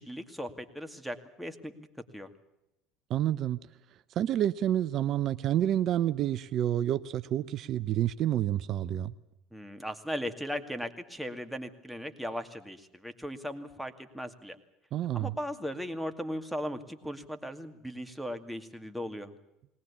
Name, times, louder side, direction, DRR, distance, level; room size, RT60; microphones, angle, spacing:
voice 1, 0.0-1.9 2.1-2.3 9.5-14.6 15.1-19.3, equal, ahead, 2.3 m, -38 dB
voice 2, 3.1-3.6 4.2-9.1 14.9-15.4, right 11 dB, 55° right, 0.7 m, -28 dB
20.5 x 19.0 x 8.5 m
hypercardioid pair, 85°, 0 cm